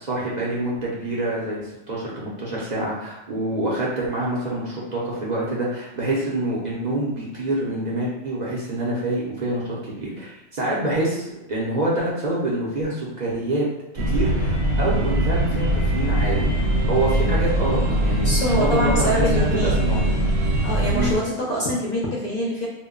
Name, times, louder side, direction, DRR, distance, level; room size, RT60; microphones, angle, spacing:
voice 1, 0.0-13.6 13.9-16.6 16.9-18.7 19.0-20.1 20.9-21.1, right 1 dB, 50° right, -5 dB, 0.7 m, -26 dB
sound 1, 14.0-21.2, right 1 dB, 75° right, 0.9 m, -22 dB
voice 2, 18.2-20.3 20.6-22.7, equal, 50° left, -5 dB, 0.6 m, -25 dB
2.2 x 2.1 x 3.6 m, 0.97 s
omnidirectional pair, 1.1 m